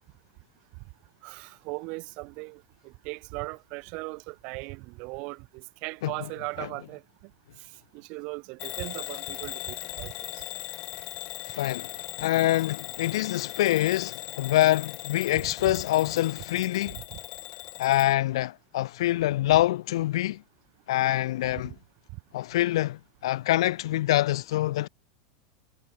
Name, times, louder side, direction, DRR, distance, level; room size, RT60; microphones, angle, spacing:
voice 1, 1.2-7.0 7.9-10.4 15.4-15.5 17.0-17.2, right 29 dB, 45° right, 1.0 m, -38 dB
Bell / Alarm, 8.6-18.1, left 20 dB, 40° left, 1.1 m, -39 dB
voice 2, 11.5-11.9 12.2-17.0 17.8-20.4 20.9-21.8 22.3-24.9, left 15 dB, 75° left, 0.5 m, -25 dB
supercardioid pair, 160°, 3 cm